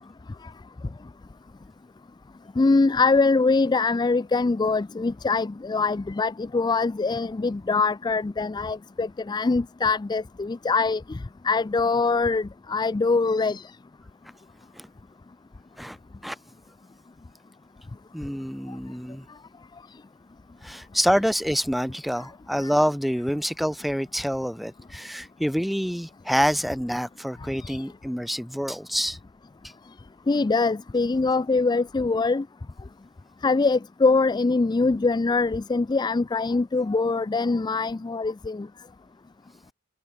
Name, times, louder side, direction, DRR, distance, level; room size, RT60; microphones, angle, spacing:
voice 1, 2.6-11.2 11.4-13.6 27.6-27.8 30.3-32.4 33.4-38.7, left 3 dB, 20° left, 0.3 m, -23 dB
voice 2, 18.1-19.3 20.6-29.2, equal, ahead, 2.1 m, -27 dB
head